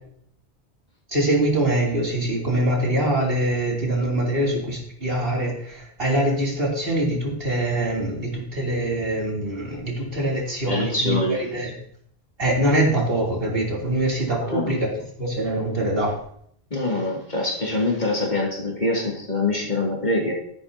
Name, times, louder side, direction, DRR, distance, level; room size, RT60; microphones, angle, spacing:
voice 1, 1.1-11.7 12.4-16.2, right 1 dB, 60° right, -3 dB, 3.4 m, -24 dB
voice 2, 10.7-11.4 14.4-14.6 16.7-20.3, left 2 dB, 40° left, -3 dB, 2.7 m, -24 dB
13.5 x 11.5 x 2.8 m, 0.65 s
omnidirectional pair, 1.1 m